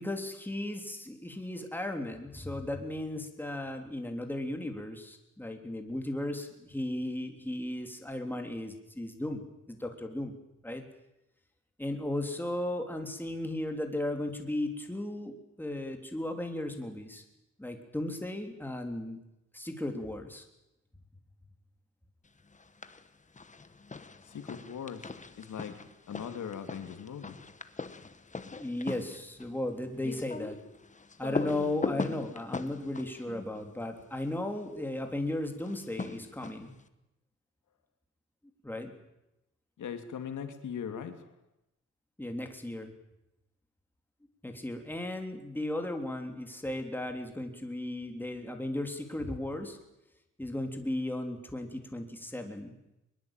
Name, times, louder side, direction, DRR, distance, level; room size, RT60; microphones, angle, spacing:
voice 1, 0.0-10.3 10.6-10.8 11.8-17.2 17.6-19.2 19.5-20.4 28.6-30.6 31.2-36.7 38.6-38.9 42.2-42.9 44.4-49.8 50.4-52.7, left 1 dB, 5° left, 4 dB, 3.5 m, -36 dB
sound 1, 22.5-23.1 23.4-34.4 35.6-36.8, left 4 dB, 25° left, 1.4 m, -40 dB
voice 2, 24.2-25.1 25.4-25.7 26.1-27.4 39.8-41.2, left 7 dB, 85° left, 7 dB, 2.8 m, -39 dB
22.5 x 22.0 x 9.1 m, 0.89 s
wide cardioid pair, 135°, 29 cm